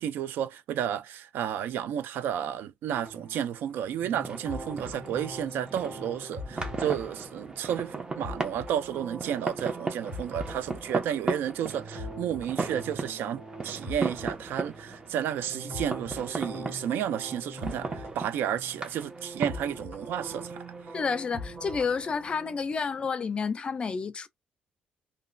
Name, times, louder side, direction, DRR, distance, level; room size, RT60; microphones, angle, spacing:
voice 1, 0.0-20.7, right 9 dB, 75° right, 0.4 m, -32 dB
sound 1, 2.9-22.6, equal, 55° right, 1.4 m, -42 dB
sound 2, 3.8-23.1, right 3 dB, 20° right, 0.7 m, -38 dB
voice 2, 20.9-24.3, left 5 dB, 30° left, 0.4 m, -30 dB
2.9 x 2.1 x 2.5 m
cardioid pair, 125°, 4 cm